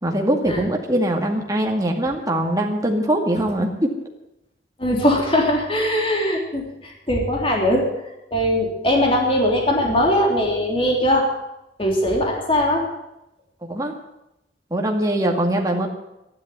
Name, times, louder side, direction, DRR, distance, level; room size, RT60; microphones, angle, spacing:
voice 1, 0.0-3.9 13.6-13.9 14.7-15.9, right 1 dB, 20° right, 2 dB, 2.2 m, -22 dB
voice 2, 4.8-11.3 11.8-12.9, left 1 dB, 30° left, 0 dB, 3.4 m, -20 dB
13.0 x 11.0 x 9.4 m, 0.89 s
head